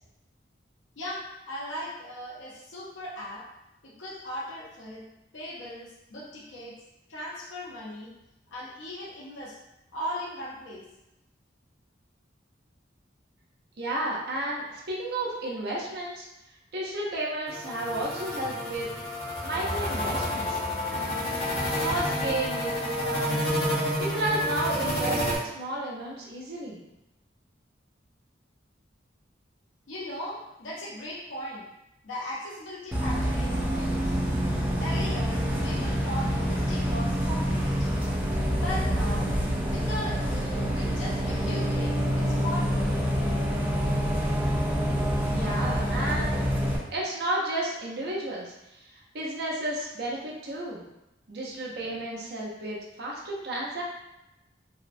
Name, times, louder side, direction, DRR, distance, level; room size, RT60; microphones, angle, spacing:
voice 1, 1.0-3.4 3.8-5.0 5.3-6.8 7.1-8.1 8.5-9.6 9.9-10.8 29.9-31.6 32.0-34.1 34.8-38.1 38.5-39.3 39.7-42.9, equal, 85° left, -5 dB, 0.6 m, -38 dB
voice 2, 13.8-16.3 16.7-18.9 19.4-20.6 20.9-21.3 21.8-23.7 24.0-26.8 45.3-46.4 46.9-48.5 49.1-50.8 51.3-53.8, right 1 dB, 60° right, -3 dB, 0.6 m, -32 dB
sound 1, 17.5-25.4, left 1 dB, 55° left, 0.9 m, -29 dB
Bus, 32.9-46.8, equal, 10° right, 0.4 m, -27 dB
2.8 x 2.1 x 2.5 m, 0.91 s
head